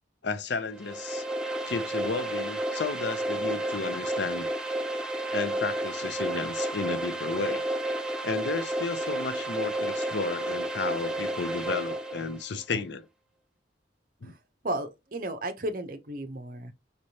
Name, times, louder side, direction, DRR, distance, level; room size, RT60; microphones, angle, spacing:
voice 1, 0.2-1.3 1.7-4.5 5.3-7.7 8.2-13.1 14.2-14.3, left 4 dB, 70° left, 0.6 m, -33 dB
sound 1, 0.7-12.4, right 1 dB, 5° right, 0.5 m, -31 dB
voice 2, 14.6-16.7, right 1 dB, 50° right, 0.7 m, -34 dB
5.0 x 3.2 x 2.8 m
head